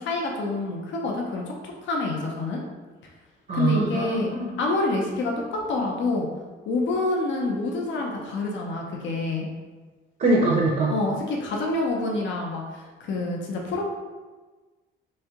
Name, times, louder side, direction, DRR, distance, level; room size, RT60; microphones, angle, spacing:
voice 1, 0.0-1.5 1.8-2.6 3.5-4.3 4.6-6.3 6.7-9.5 10.9-13.8, left 2 dB, 70° left, 0 dB, 0.7 m, -27 dB
voice 2, 3.5-4.5 10.2-10.9, right 2 dB, 45° right, -3 dB, 0.7 m, -23 dB
3.2 x 2.7 x 3.5 m, 1.3 s
cardioid pair, 90°, 20 cm